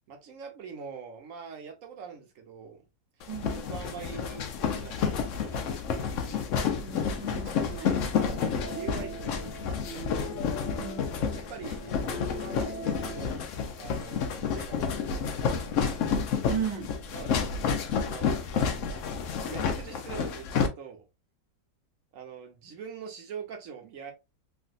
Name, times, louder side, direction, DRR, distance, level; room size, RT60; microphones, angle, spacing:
voice 1, 0.1-2.8 3.2-6.4 8.2-9.1 9.4-10.2 11.5-13.5 13.8-15.8 17.1-17.6 18.1-19.0 19.4-21.1 22.1-24.1, right 6 dB, 60° right, 1.0 m, -44 dB
sound 1, 3.2-20.7, left 6 dB, 80° left, 0.6 m, -30 dB
voice 2, 6.8-8.1 10.8-11.2 16.5-17.0, right 7 dB, 75° right, 1.4 m, -36 dB
sound 2, 7.6-13.3, left 1 dB, 35° left, 0.9 m, -40 dB
3.3 x 2.6 x 2.4 m
omnidirectional pair, 2.0 m